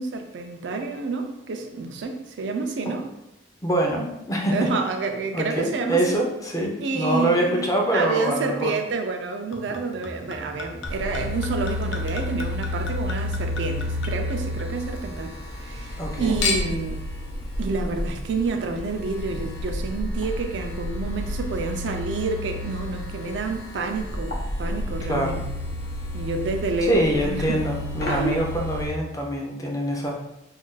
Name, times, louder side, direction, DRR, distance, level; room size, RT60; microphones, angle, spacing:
voice 1, 0.0-3.0 4.5-6.2 6.8-7.6 7.9-17.0 17.6-25.4 26.1-27.6 28.1-28.4, right 4 dB, 70° right, 5 dB, 0.4 m, -29 dB
voice 2, 3.6-4.6 5.3-8.7 16.0-16.4 25.1-25.4 26.8-30.1, right 1 dB, 20° left, 0 dB, 0.5 m, -24 dB
Chink clink / Liquid, 9.5-15.0 15.4-16.1 16.4-16.9 17.7-17.8, left 4 dB, 90° left, 0.5 m, -34 dB
sound 1, 10.8-28.9, left 1 dB, 55° left, 0.7 m, -31 dB
2.5 x 2.2 x 3.8 m, 0.88 s
head